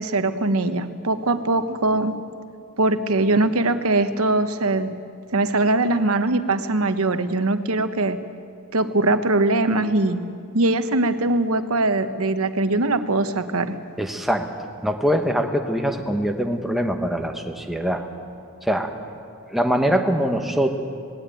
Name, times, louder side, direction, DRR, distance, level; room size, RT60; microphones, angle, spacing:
voice 1, 0.0-2.1 2.8-4.9 5.3-8.2 8.7-10.2 10.5-13.8, right 2 dB, 85° right, 10 dB, 1.1 m, -21 dB
voice 2, 14.0-14.5 14.8-18.0 18.6-18.9 19.5-20.8, equal, ahead, 4 dB, 1.2 m, -23 dB
19.0 x 17.0 x 9.1 m, 2.4 s
head